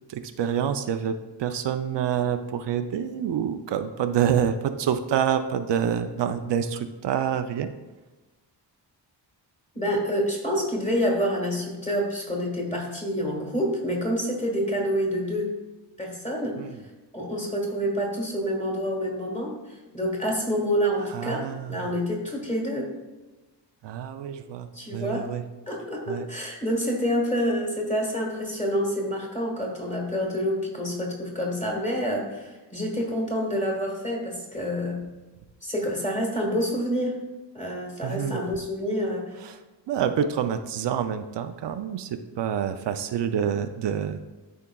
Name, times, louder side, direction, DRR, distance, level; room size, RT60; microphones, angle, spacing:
voice 1, 0.1-7.7 16.6-16.7 21.1-21.9 23.8-25.4 26.1-26.2 38.0-38.4 39.4-39.6 39.9-44.2, right 8 dB, 75° right, 8 dB, 0.5 m, -27 dB
voice 2, 9.7-15.5 16.0-16.6 17.1-19.5 19.9-22.9 24.7-25.3 25.7-35.0 35.6-37.2 37.5-39.3 40.0-40.1, equal, 15° left, -1 dB, 1.6 m, -27 dB
12.5 x 4.7 x 2.3 m, 1.1 s
wide cardioid pair, 160°, 43 cm